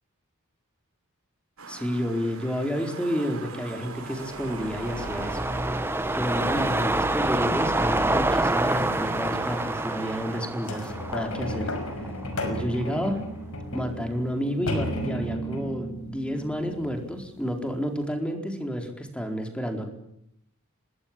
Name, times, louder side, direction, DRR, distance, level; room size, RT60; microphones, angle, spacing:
sound 1, 1.6-10.4, right 3 dB, 80° right, 5.7 m, -41 dB
voice 1, 1.7-5.5 6.1-12.1 12.4-13.2 13.7-19.9, equal, 5° left, 4 dB, 4.4 m, -30 dB
sound 2, 4.0-12.4 12.8-12.9, right 2 dB, 10° right, 1.1 m, -27 dB
sound 3, 10.6-17.4 18.0-18.1, equal, 80° left, 5.7 m, -33 dB
27.5 x 20.0 x 8.9 m, 0.79 s
head